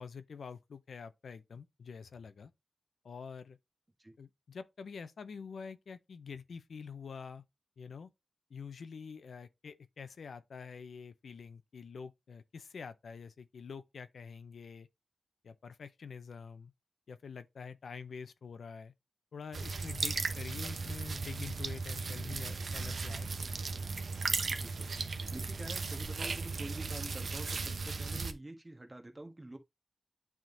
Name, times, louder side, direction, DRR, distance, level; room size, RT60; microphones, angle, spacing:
voice 1, 0.0-2.5 3.0-3.6 4.2-7.4 7.8-8.1 8.5-14.9 15.4-16.7 17.1-18.9 19.3-23.3, left 5 dB, 85° left, 0.6 m, -46 dB
sound 1, 19.5-28.3, right 4 dB, 70° right, 0.9 m, -36 dB
voice 2, 24.5-24.9 25.2-29.6, right 1 dB, 20° right, 1.4 m, -47 dB
9.1 x 3.7 x 3.9 m
wide cardioid pair, 90°, 0 cm